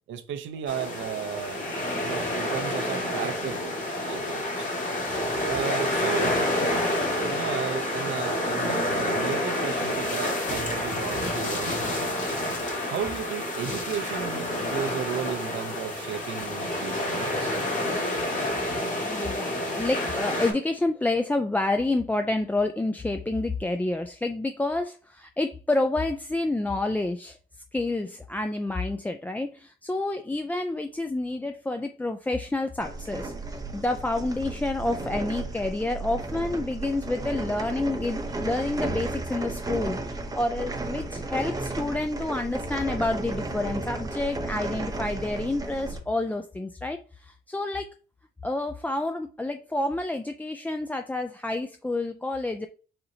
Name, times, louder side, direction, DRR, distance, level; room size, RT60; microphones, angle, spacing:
voice 1, 0.1-1.6 2.0-3.7 4.1-4.7 5.4-6.4 7.2-11.8 12.9-17.6, right 9 dB, 75° right, 0.6 m, -34 dB
sound 1, 0.7-20.5, left 1 dB, 40° left, 1.7 m, -28 dB
voice 2, 19.0-27.4 27.7-40.0 40.4-47.9 48.4-52.7, left 2 dB, 10° left, 0.3 m, -29 dB
sound 2, 32.8-46.0, right 2 dB, 20° right, 0.7 m, -33 dB
4.2 x 4.0 x 2.7 m
cardioid pair, 90°, 20 cm